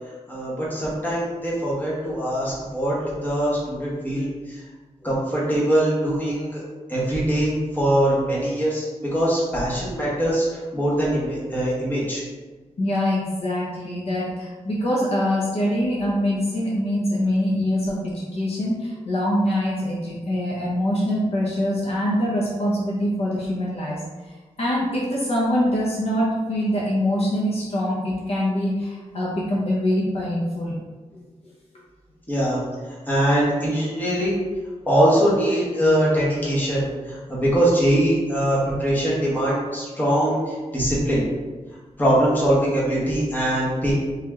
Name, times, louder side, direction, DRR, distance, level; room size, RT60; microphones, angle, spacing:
voice 1, 0.3-3.0 3.2-4.6 5.0-6.6 6.9-8.8 9.1-12.2 32.3-32.6 33.1-34.4 34.9-41.2 42.0-43.9, right 1 dB, 15° left, -7 dB, 1.2 m, -22 dB
voice 2, 12.8-24.0 24.6-30.8, equal, 55° left, -5 dB, 0.7 m, -24 dB
3.3 x 2.9 x 3.5 m, 1.3 s
wide cardioid pair, 165°, 12 cm